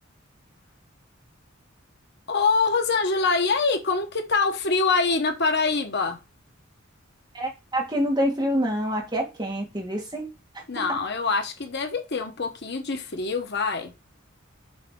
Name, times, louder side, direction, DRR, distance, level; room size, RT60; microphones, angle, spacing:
voice 1, 2.3-6.2 10.7-13.9, left 4 dB, 55° left, 1.1 m, -24 dB
voice 2, 7.3-11.0, equal, 20° right, 1.9 m, -27 dB
6.8 x 3.3 x 4.6 m
head